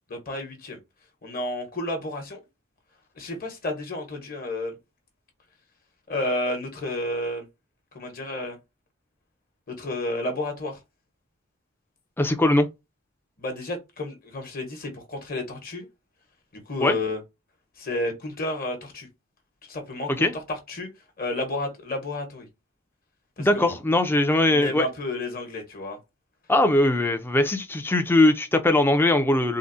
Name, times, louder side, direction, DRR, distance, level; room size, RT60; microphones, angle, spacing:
voice 1, 0.1-0.8 1.2-2.4 3.2-4.7 6.1-7.4 7.9-8.6 9.7-10.8 13.4-15.9 16.7-17.2 17.8-19.1 19.7-20.9 21.2-22.5 23.4-23.7 24.5-26.0, left 1 dB, 45° left, 1.0 m, -31 dB
voice 2, 12.2-12.7 16.8-17.0 20.1-20.3 23.4-24.9 26.5-29.6, left 1 dB, 10° left, 0.4 m, -21 dB
3.7 x 2.0 x 2.5 m
head